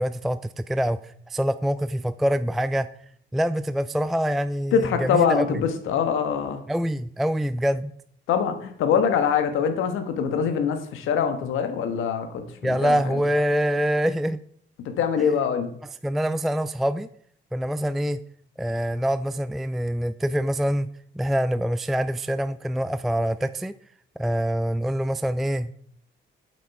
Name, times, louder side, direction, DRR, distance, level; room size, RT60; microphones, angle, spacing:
voice 1, 0.0-2.9 3.3-5.6 6.7-7.9 12.6-14.4 15.2-15.3 16.0-17.1 17.5-18.2 18.6-20.9 21.2-23.7 24.2-25.8, equal, ahead, 13 dB, 0.3 m, -25 dB
voice 2, 4.7-6.6 8.3-13.2 14.8-15.7, left 7 dB, 85° left, 7 dB, 1.4 m, -24 dB
8.7 x 7.6 x 4.8 m, 0.64 s
cardioid pair, 90°, 20 cm